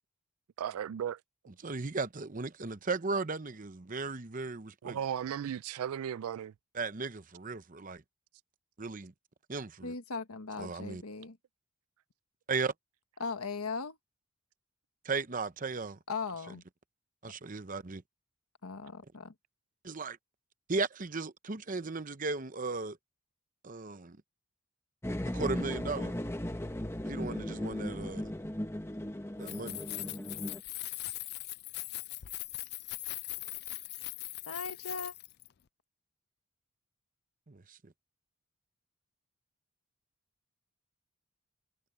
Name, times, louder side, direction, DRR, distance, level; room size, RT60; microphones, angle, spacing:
voice 1, 0.6-1.2 4.8-6.5, right 9 dB, 80° right, 0.3 m, -35 dB
voice 2, 1.6-5.0 6.7-8.0 8.8-9.1 9.5-9.9 10.6-11.0 12.5-12.7 15.0-16.0 17.2-18.0 19.8-20.2 20.7-23.0 23.6-24.2 25.3-26.1 27.1-28.3 29.4-29.8 37.5-37.9, right 4 dB, 35° right, 0.8 m, -36 dB
voice 3, 9.8-11.4 13.2-14.0 16.1-16.6 17.2-17.3 18.6-19.3 34.5-35.1, left 4 dB, 85° left, 1.4 m, -38 dB
sound 1, 25.0-30.6, left 1 dB, 10° left, 0.9 m, -37 dB
Keys jangling, 29.3-35.5, left 18 dB, 50° left, 0.4 m, -40 dB
head